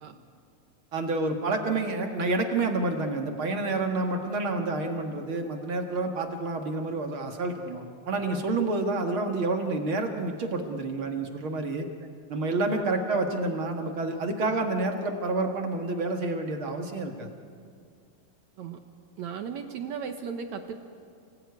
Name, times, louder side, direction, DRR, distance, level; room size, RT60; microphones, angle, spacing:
voice 1, 0.9-11.9 12.3-17.3, right 2 dB, 50° right, 3 dB, 1.7 m, -29 dB
voice 2, 19.2-20.8, right 6 dB, 75° right, 6 dB, 1.7 m, -36 dB
29.0 x 18.5 x 9.6 m, 2.2 s
omnidirectional pair, 4.7 m